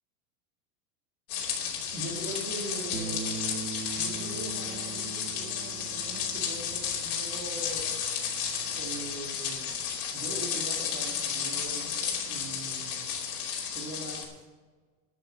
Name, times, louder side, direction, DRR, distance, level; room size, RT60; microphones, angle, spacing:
sound 1, 1.3-14.2, left 7 dB, 65° left, 3.0 m, -33 dB
voice 1, 1.9-3.2 3.9-7.9 8.7-9.8 10.1-13.1 13.7-14.4, right 2 dB, 30° right, 0 dB, 2.1 m, -41 dB
Bass guitar, 2.9-9.2, right 6 dB, 85° right, 1.7 m, -42 dB
11.5 x 6.6 x 8.2 m, 1.4 s
supercardioid pair, 170°, 48 cm